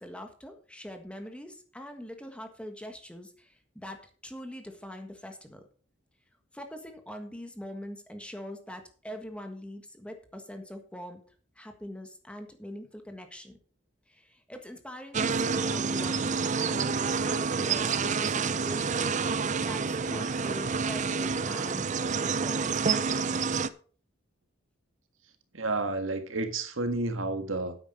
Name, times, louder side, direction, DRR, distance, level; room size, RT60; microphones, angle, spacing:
voice 1, 0.0-5.6 6.5-11.2 11.5-13.6 14.1-19.1 19.6-23.6, equal, 5° left, 1.5 m, -43 dB
sound 1, 15.1-23.7, right 5 dB, 40° right, 0.6 m, -28 dB
voice 2, 25.5-27.8, right 2 dB, 90° right, 1.7 m, -30 dB
9.8 x 8.4 x 4.9 m
head